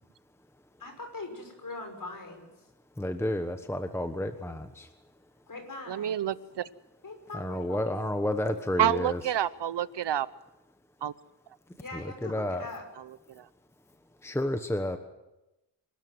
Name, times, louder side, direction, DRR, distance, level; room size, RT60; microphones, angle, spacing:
voice 1, 0.8-2.5 5.5-6.2 7.0-7.9 11.8-12.9, left 3 dB, 50° left, 4 dB, 6.2 m, -41 dB
voice 2, 3.0-4.9 7.3-9.2 11.9-12.6 14.2-15.0, left 1 dB, 5° left, 8 dB, 1.2 m, -31 dB
voice 3, 5.9-6.7 8.8-10.3 11.0-11.1 13.3-13.5, right 10 dB, 80° right, 17 dB, 0.8 m, -28 dB
26.0 x 13.0 x 9.4 m, 0.97 s
wide cardioid pair, 110°, 42 cm